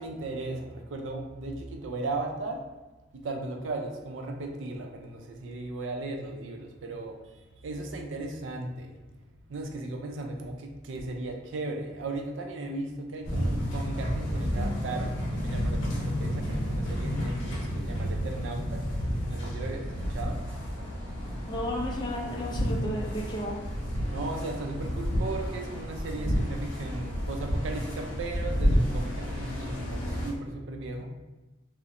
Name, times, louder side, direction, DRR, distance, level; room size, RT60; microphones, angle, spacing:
voice 1, 0.0-2.6 3.1-8.9 9.5-18.8 19.3-20.4 24.1-31.1, right 2 dB, 70° right, 3 dB, 0.4 m, -36 dB
sound 1, 13.2-30.3, equal, 70° left, 0.6 m, -31 dB
voice 2, 21.5-23.6, equal, 25° left, -2 dB, 0.4 m, -33 dB
2.4 x 2.0 x 2.8 m, 1.1 s
head